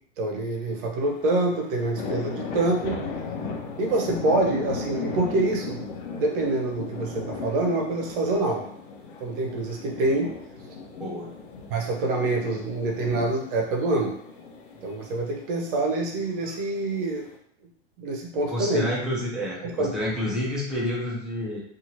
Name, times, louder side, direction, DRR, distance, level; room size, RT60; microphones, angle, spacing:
voice 1, 0.2-3.0 3.8-5.8 6.1-8.6 9.2-10.3 11.7-14.1 14.8-17.3 18.0-18.9 19.6-20.0, right 2 dB, 55° right, 0 dB, 0.9 m, -26 dB
sound 1, 1.0-17.4, left 4 dB, 55° left, 0.7 m, -37 dB
voice 2, 11.0-11.3 18.5-21.6, equal, ahead, -5 dB, 0.6 m, -29 dB
2.8 x 2.5 x 2.8 m, 0.68 s
hypercardioid pair, 100°, 32 cm